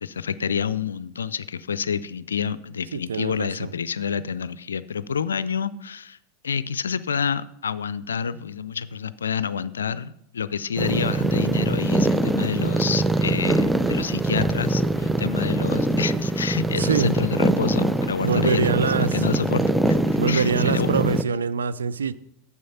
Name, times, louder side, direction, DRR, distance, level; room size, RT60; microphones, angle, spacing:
voice 1, 0.0-6.2 6.4-20.9, left 7 dB, 85° left, 17 dB, 0.4 m, -28 dB
voice 2, 2.9-3.7 16.8-17.1 18.2-19.2 20.2-22.1, right 5 dB, 85° right, 15 dB, 0.5 m, -24 dB
sound 1, 10.8-21.2, right 2 dB, 5° right, 0.6 m, -23 dB
9.6 x 7.4 x 5.5 m, 0.75 s
hypercardioid pair, 90°, 0 cm